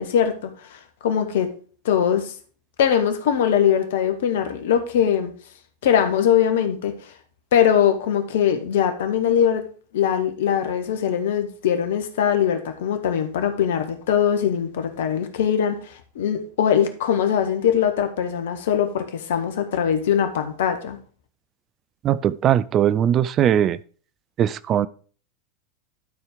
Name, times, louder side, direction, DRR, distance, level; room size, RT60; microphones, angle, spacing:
voice 1, 0.0-1.5 1.8-2.3 2.8-5.3 5.8-6.9 7.5-9.6 9.9-21.0, left 8 dB, 65° left, 1.4 m, -21 dB
voice 2, 22.0-23.8 24.4-24.9, right 10 dB, 35° right, 0.4 m, -20 dB
12.0 x 4.5 x 5.0 m
figure-of-eight pair, 90°, 0 cm